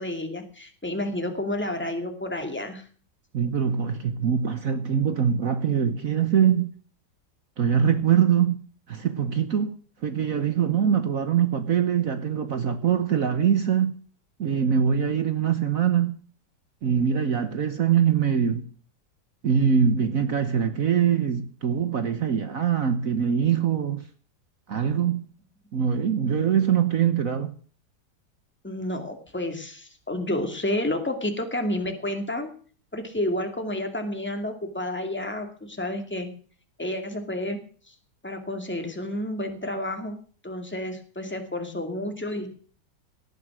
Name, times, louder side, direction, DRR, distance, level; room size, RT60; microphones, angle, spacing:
voice 1, 0.0-2.9 28.6-32.5 32.9-36.3 36.8-37.6 37.9-38.0 38.2-40.2 40.4-42.5, left 1 dB, 5° left, 2.3 m, -30 dB
voice 2, 3.3-6.7 7.6-8.6 8.9-9.8 10.0-13.9 14.4-16.1 16.8-18.6 19.4-24.0 24.7-25.2 25.7-27.5, right 8 dB, 55° right, 1.3 m, -23 dB
18.0 x 9.6 x 6.2 m
omnidirectional pair, 1.9 m